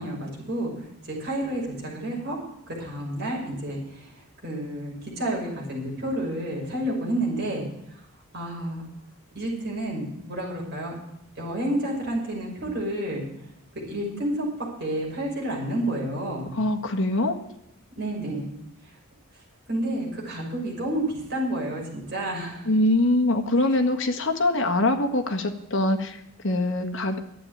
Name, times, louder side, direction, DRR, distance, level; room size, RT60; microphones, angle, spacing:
voice 1, 0.0-2.4 2.7-7.7 8.3-8.9 9.3-10.9 11.4-13.3 13.9-14.5 14.8-16.5 18.0-18.5 19.7-22.7, right 1 dB, 45° right, -2 dB, 5.7 m, -30 dB
voice 2, 16.6-17.3 22.7-26.2 26.4-27.2, left 1 dB, 55° left, 5 dB, 1.7 m, -23 dB
12.0 x 8.8 x 9.1 m, 0.80 s
head